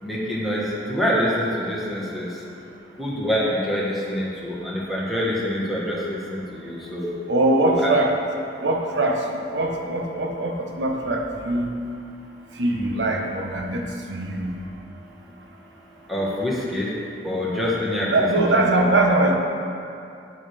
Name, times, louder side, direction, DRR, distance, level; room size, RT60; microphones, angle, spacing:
voice 1, 0.0-2.3 3.0-7.1 7.8-7.9 16.1-16.9 17.2-18.1 18.3-18.6, equal, ahead, -6 dB, 1.2 m, -25 dB
voice 2, 7.3-8.1 8.6-9.2 9.5-11.7 12.6-14.5 18.1-19.4, right 2 dB, 90° right, 1 dB, 0.9 m, -22 dB
7.8 x 7.4 x 3.4 m, 2.6 s
head